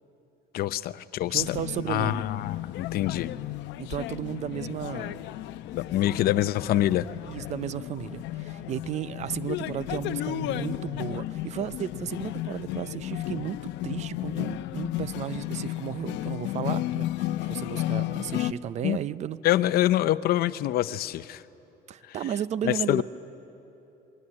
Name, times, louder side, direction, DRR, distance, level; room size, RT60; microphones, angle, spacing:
voice 1, 0.5-1.5 1.9-3.3 5.7-7.1 18.8-19.0 19.4-21.4 22.6-23.0, left 14 dB, 60° left, 14 dB, 0.7 m, -25 dB
sound 1, 1.3-18.5, left 14 dB, 85° left, 0.8 m, -33 dB
voice 2, 1.3-2.2 3.8-5.2 7.3-19.4 21.9-23.0, right 10 dB, 40° right, 17 dB, 0.5 m, -34 dB
27.0 x 21.5 x 9.8 m, 3.0 s
cardioid pair, 175°, 18 cm